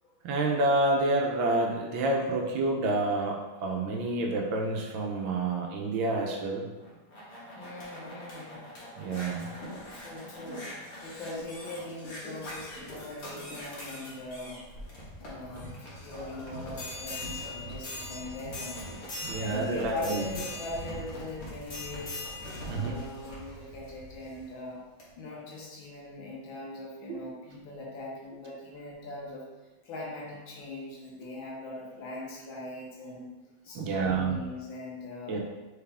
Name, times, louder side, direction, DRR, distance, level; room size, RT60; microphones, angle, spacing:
voice 1, 0.2-6.7 9.0-9.5 19.2-20.3 22.7-22.9 27.1-27.2 33.7-34.4 35.3-35.4, right 2 dB, 75° right, 0 dB, 1.3 m, -28 dB
sound 1, 6.8-24.4 25.0-25.1, left 1 dB, 40° left, 1.0 m, -41 dB
voice 2, 7.5-8.9 9.9-14.7 15.2-19.0 19.4-22.2 22.7-24.8 25.2-29.4 29.8-33.3 33.6-35.4, left 2 dB, 70° left, -4 dB, 1.7 m, -41 dB
4.1 x 3.4 x 3.4 m, 1.2 s
omnidirectional pair, 2.3 m